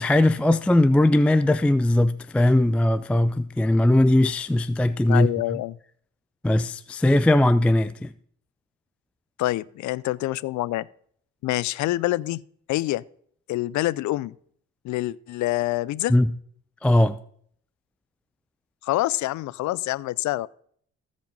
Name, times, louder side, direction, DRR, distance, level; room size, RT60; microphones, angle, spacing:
voice 1, 0.0-5.3 6.4-8.1 16.1-16.3 16.8-17.2, left 1 dB, 5° left, 0.3 m, -19 dB
voice 2, 5.1-5.8 9.4-10.9 11.4-12.4 12.7-13.0 13.5-14.3 14.8-16.2 18.8-20.5, left 17 dB, 70° left, 0.4 m, -26 dB
14.5 x 5.2 x 5.3 m
cardioid pair, 90°, 30 cm